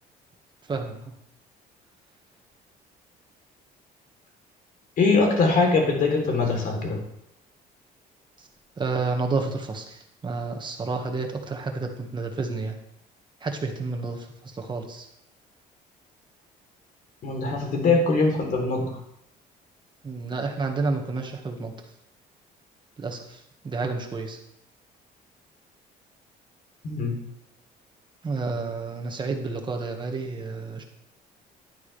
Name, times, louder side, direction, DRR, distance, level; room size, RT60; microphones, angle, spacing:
voice 1, 5.0-7.0 17.2-19.0 26.8-27.2, left 3 dB, 55° left, 1 dB, 3.5 m, -22 dB
voice 2, 8.8-12.8 13.4-14.2 14.6-15.1 20.0-21.7 23.0-23.2 23.6-24.4 28.2-30.8, right 3 dB, 25° right, 3 dB, 1.7 m, -30 dB
11.5 x 9.6 x 3.4 m, 0.78 s
cardioid pair, 110°, 17 cm